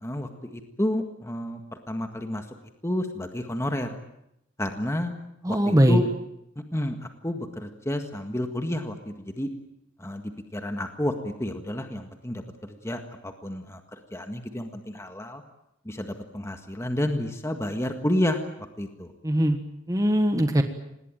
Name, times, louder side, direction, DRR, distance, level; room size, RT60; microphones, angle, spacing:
voice 1, 0.0-1.6 1.9-2.4 2.8-4.0 4.6-5.1 5.5-6.1 6.7-7.0 7.2-9.5 10.0-13.8 14.1-15.4 15.9-16.1 16.3-18.4 18.8-19.1, left 1 dB, 15° left, 5 dB, 1.7 m, -30 dB
voice 2, 5.4-6.0 19.2-19.6 19.9-20.6, equal, 20° right, 6 dB, 1.5 m, -20 dB
26.5 x 20.0 x 9.1 m, 0.82 s
head